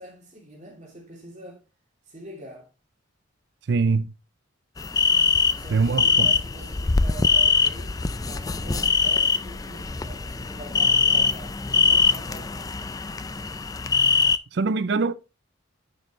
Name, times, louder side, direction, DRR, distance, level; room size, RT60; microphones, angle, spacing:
voice 1, 0.0-1.6 2.1-2.7 5.6-12.8, right 1 dB, 35° right, 2.8 m, -44 dB
voice 2, 3.7-4.1 5.7-6.3 14.5-15.1, right 4 dB, 60° right, 0.5 m, -23 dB
sound 1, 4.8-14.4, left 5 dB, 20° left, 0.4 m, -22 dB
9.6 x 6.6 x 3.1 m
head